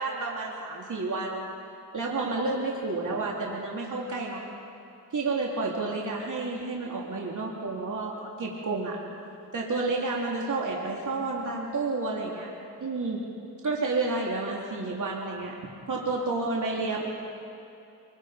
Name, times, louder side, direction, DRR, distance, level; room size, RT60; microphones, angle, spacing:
voice 1, 0.0-1.5 1.9-4.5 5.1-9.0 9.5-12.5 12.8-13.2 13.6-15.5 15.9-17.1, right 3 dB, 45° right, -3 dB, 3.3 m, -30 dB
28.0 x 22.5 x 5.2 m, 2.7 s
cardioid pair, 75°, 41 cm